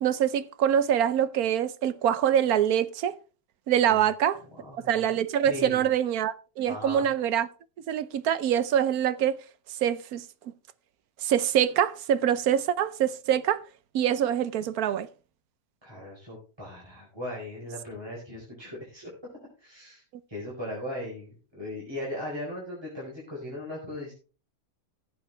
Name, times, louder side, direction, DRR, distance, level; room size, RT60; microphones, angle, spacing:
voice 1, 0.0-3.1 3.7-4.4 4.9-7.5 7.9-9.4 9.8-10.2 11.2-13.6 13.9-15.1, right 10 dB, 75° right, 1.2 m, -24 dB
voice 2, 4.6-5.0 5.4-5.9 6.7-7.1 15.8-19.1 19.6-20.0 20.3-24.1, left 1 dB, 15° right, 4.4 m, -38 dB
15.0 x 8.3 x 3.3 m
omnidirectional pair, 1.6 m